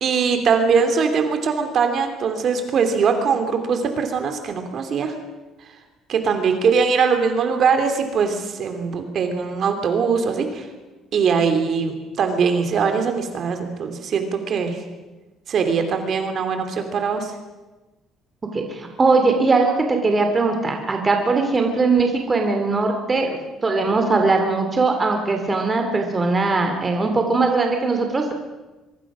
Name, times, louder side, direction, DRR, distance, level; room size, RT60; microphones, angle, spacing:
voice 1, 0.0-5.1 6.1-10.7 11.1-14.8 15.5-17.3, right 5 dB, 45° right, 6 dB, 2.8 m, -21 dB
voice 2, 18.5-28.3, right 3 dB, 20° right, 4 dB, 2.6 m, -20 dB
24.0 x 24.0 x 6.2 m, 1.1 s
cardioid pair, 155°, 0 cm